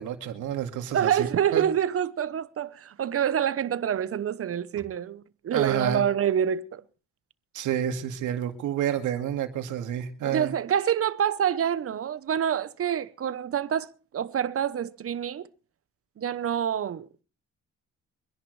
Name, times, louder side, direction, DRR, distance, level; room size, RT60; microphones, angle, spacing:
voice 1, 0.0-1.3 1.5-1.6 5.5-6.0 7.5-10.5, right 9 dB, 85° right, 2.1 m, -29 dB
voice 2, 0.9-6.8 10.2-15.5 16.2-17.2, right 9 dB, 50° right, 0.9 m, -27 dB
25.0 x 11.0 x 3.2 m
cardioid pair, 90°, 30 cm